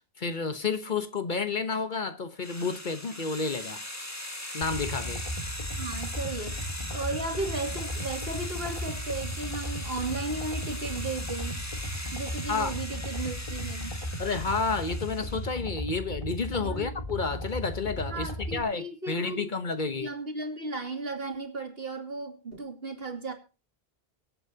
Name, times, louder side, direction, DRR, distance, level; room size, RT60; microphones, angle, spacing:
voice 1, 0.2-3.8 4.5-5.2 12.5-12.7 14.2-20.1, left 4 dB, 50° left, 1.2 m, -30 dB
sound 1, 2.4-15.5, left 1 dB, 15° left, 1.6 m, -40 dB
sound 2, 4.6-18.6, equal, 35° left, 2.3 m, -36 dB
voice 2, 5.8-6.6 6.9-11.6 12.1-14.0 16.6-17.0 18.1-19.5 20.0-23.3, right 3 dB, 70° right, 2.9 m, -35 dB
24.5 x 8.4 x 2.8 m
omnidirectional pair, 1.1 m